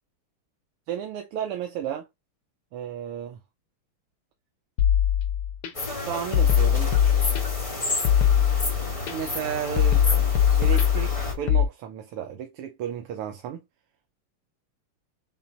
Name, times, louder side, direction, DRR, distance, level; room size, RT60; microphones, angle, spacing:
voice 1, 0.9-2.1 2.7-3.4 6.0-6.9 9.1-10.0 10.6-13.6, right 9 dB, 85° right, 1.7 m, -33 dB
sound 1, 4.8-5.7 6.3-7.7 8.0-9.1 9.8-11.6, left 9 dB, 85° left, 1.9 m, -21 dB
sound 2, 5.7-11.3, left 2 dB, 15° left, 1.7 m, -31 dB
5.9 x 3.6 x 2.5 m
omnidirectional pair, 2.4 m